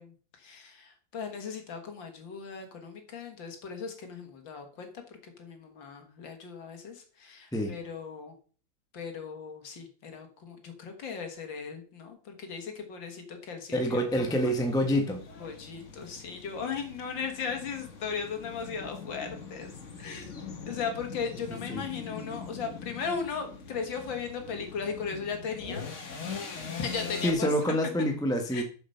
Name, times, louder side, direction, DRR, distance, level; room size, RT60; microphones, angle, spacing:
voice 1, 0.0-5.0 5.4-8.3 8.9-14.5 15.4-19.7 20.0-20.3 20.7-25.8 26.7-27.8 28.5-28.6, left 6 dB, 65° left, 5 dB, 2.3 m, -37 dB
voice 2, 13.7-15.2 21.7-21.8 27.2-28.6, equal, 5° left, 4 dB, 0.9 m, -27 dB
sound 1, 14.1-27.3, left 5 dB, 40° left, 1.5 m, -42 dB
6.9 x 6.8 x 5.6 m, 0.41 s
omnidirectional pair, 2.2 m